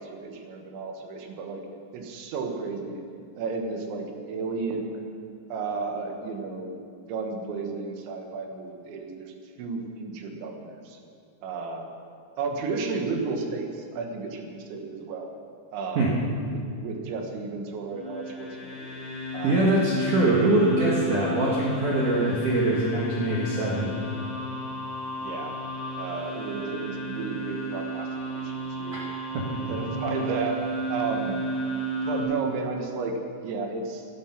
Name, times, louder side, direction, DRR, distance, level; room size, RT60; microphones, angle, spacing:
voice 1, 0.0-1.6 1.9-3.0 3.4-5.0 5.5-6.8 7.1-11.0 11.4-11.9 12.4-15.3 15.7-16.2 16.5-18.9 19.3-19.7 25.2-25.6 26.0-29.0 29.5-30.6 30.9-31.4 32.0-34.1, right 4 dB, 70° right, 3 dB, 3.6 m, -33 dB
sound 1, 17.9-32.2, equal, 25° left, 4.9 m, -33 dB
voice 2, 19.4-23.9 28.9-29.0 29.3-29.4, right 2 dB, 55° right, -4 dB, 2.4 m, -23 dB
16.5 x 12.0 x 5.9 m, 2.4 s
omnidirectional pair, 5.7 m